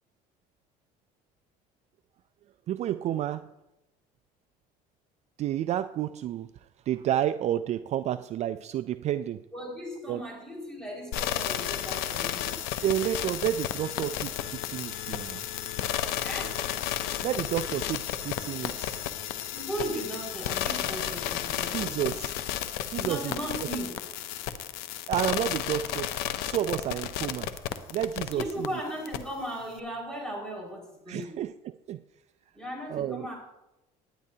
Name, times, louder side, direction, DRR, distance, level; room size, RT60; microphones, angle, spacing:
voice 1, 2.7-3.5 5.4-6.5 6.9-9.4 10.1-10.2 12.8-15.4 17.2-19.0 20.9-21.0 21.7-22.3 22.9-23.3 25.1-26.1 26.5-27.5 27.9-28.7 31.1-32.0 32.9-33.3, right 11 dB, 45° right, 12 dB, 0.4 m, -30 dB
voice 2, 9.5-12.6 16.2-16.6 19.5-22.2 22.9-23.9 28.3-31.4 32.5-33.3, right 1 dB, 5° left, -3 dB, 5.0 m, -37 dB
sound 1, 11.1-28.7 29.1-29.2, left 11 dB, 85° left, 0.8 m, -32 dB
18.5 x 9.6 x 2.8 m, 0.96 s
cardioid pair, 125°, 16 cm